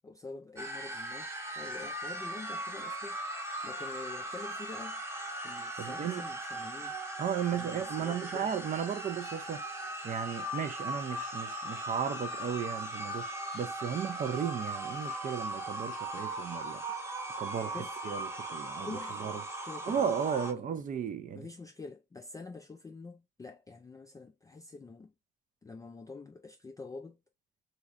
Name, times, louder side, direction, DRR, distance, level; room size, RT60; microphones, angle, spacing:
voice 1, 0.0-1.3 1.6-3.2 3.6-5.0 5.4-7.0 7.5-8.5 17.7-18.0 18.8-20.1 20.5-20.6 21.4-25.1 25.6-27.2, left 3 dB, 15° left, 0.3 m, -46 dB
sound 1, 0.6-20.5, right 1 dB, 15° right, 0.8 m, -38 dB
voice 2, 5.8-6.3 7.2-9.6 10.0-16.8 17.4-17.8 18.0-19.3 19.8-21.5, right 8 dB, 40° right, 0.5 m, -35 dB
3.1 x 2.8 x 2.3 m
cardioid pair, 90°, 20 cm